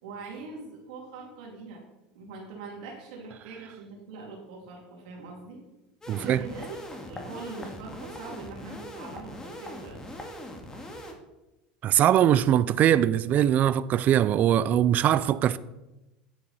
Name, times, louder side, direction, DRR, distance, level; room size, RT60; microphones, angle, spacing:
voice 1, 0.0-1.8 2.1-5.6 6.1-6.8 7.1-10.0, right 4 dB, 80° right, 2.5 m, -42 dB
sound 1, 6.0-11.1, left 1 dB, 15° left, 1.8 m, -41 dB
voice 2, 6.1-6.4 11.8-15.6, right 11 dB, 45° right, 0.4 m, -22 dB
9.6 x 7.8 x 4.2 m
supercardioid pair, 115°, 4 cm